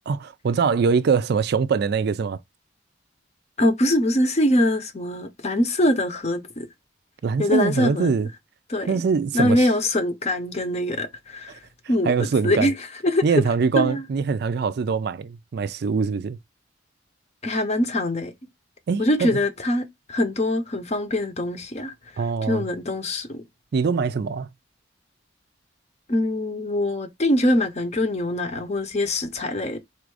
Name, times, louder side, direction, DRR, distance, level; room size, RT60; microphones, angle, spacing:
voice 1, 0.1-2.4 7.2-8.3 8.9-9.6 11.5-11.6 12.1-12.7 13.2-16.4 18.9-19.4 22.2-22.7 23.7-24.5, right 5 dB, 60° right, 0.4 m, -23 dB
voice 2, 3.6-6.7 7.4-8.1 8.7-9.0 9.3-11.5 11.9-12.8 13.0-13.2 13.8-14.0 17.4-18.3 19.0-21.9 22.4-23.4 26.1-29.8, left 1 dB, 35° left, 0.7 m, -23 dB
4.3 x 2.5 x 4.7 m
head